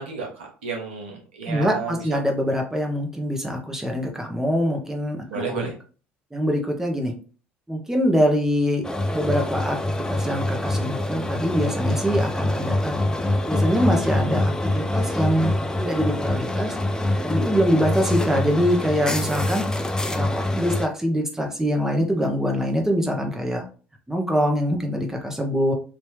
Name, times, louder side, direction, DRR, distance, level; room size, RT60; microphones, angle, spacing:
voice 1, 0.0-2.2 5.3-5.7, right 4 dB, 80° right, 0 dB, 1.1 m, -32 dB
voice 2, 1.5-5.7 6.3-7.1 7.7-8.8 9.1-13.0 13.5-15.5 15.8-16.8 17.2-19.7 20.1-23.6 24.1-25.7, equal, 5° right, 1 dB, 0.9 m, -24 dB
sound 1, 8.8-20.9, left 1 dB, 10° left, 0.5 m, -25 dB
3.1 x 2.8 x 3.2 m, 0.38 s
hypercardioid pair, 65°, 6 cm